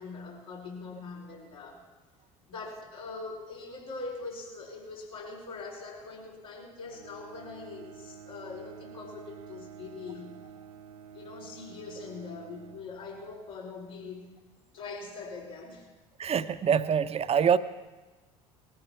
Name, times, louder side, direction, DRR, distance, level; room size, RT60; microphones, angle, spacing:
voice 1, 0.0-1.8 2.5-10.4 11.1-14.3 14.7-15.9, left 4 dB, 80° left, -5 dB, 4.6 m, -42 dB
Bowed string instrument, 6.8-13.5, right 8 dB, 90° right, 0.5 m, -49 dB
voice 2, 16.2-17.6, right 7 dB, 35° right, 11 dB, 0.7 m, -25 dB
19.0 x 14.0 x 4.5 m, 1.2 s
hypercardioid pair, 65°, 18 cm